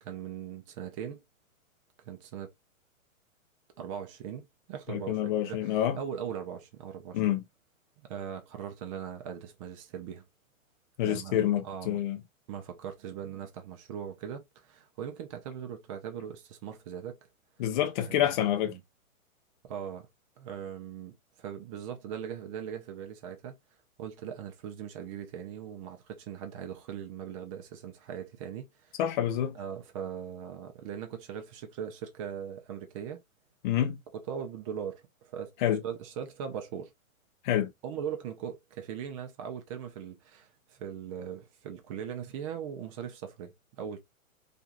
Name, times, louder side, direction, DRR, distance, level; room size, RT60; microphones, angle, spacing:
voice 1, 0.0-1.2 2.0-2.5 3.8-7.3 8.0-10.3 11.0-12.0 12.5-17.2 18.0-18.3 18.7-18.8 19.6-20.1 20.4-23.5 24.0-29.0 29.5-33.2 34.1-35.5 35.8-36.9 37.8-44.0, right 8 dB, 25° right, 0.5 m, -40 dB
voice 2, 4.9-6.0 7.1-7.4 11.0-12.2 17.6-18.7 29.0-29.6 33.6-34.0 35.6-35.8 37.4-37.7, left 11 dB, 35° left, 0.5 m, -27 dB
2.8 x 2.5 x 2.5 m
hypercardioid pair, 135°, 42 cm